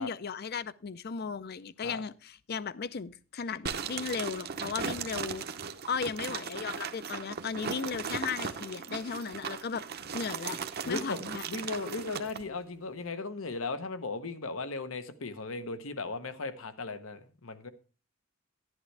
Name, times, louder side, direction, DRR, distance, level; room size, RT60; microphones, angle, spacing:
voice 1, 0.0-5.4 5.9-9.8 10.1-10.6 10.9-11.4, left 5 dB, 50° left, 17 dB, 0.5 m, -36 dB
sound 1, 3.7-12.4, right 6 dB, 50° right, 0.8 m, -37 dB
voice 2, 10.8-11.2 11.5-17.7, left 3 dB, 80° left, 11 dB, 1.0 m, -37 dB
11.0 x 11.0 x 3.3 m, 0.36 s
head